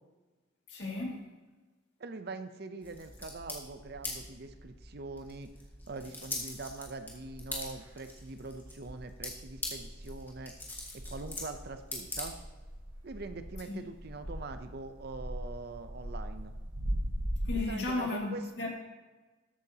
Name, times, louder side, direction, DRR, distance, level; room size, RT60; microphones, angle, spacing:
voice 1, 0.7-1.3 13.7-13.8 17.4-18.7, left 2 dB, 60° left, -2 dB, 2.2 m, -34 dB
voice 2, 2.0-5.5 5.9-10.5 11.1-12.3 13.0-16.5 17.7-18.4, right 3 dB, 50° right, 9 dB, 0.6 m, -43 dB
sound 1, 2.8-12.8, left 2 dB, 10° left, 1.7 m, -43 dB
sound 2, 7.3-7.9 8.4-17.6, equal, 85° right, 1.6 m, -39 dB
13.5 x 8.7 x 2.8 m, 1.2 s
head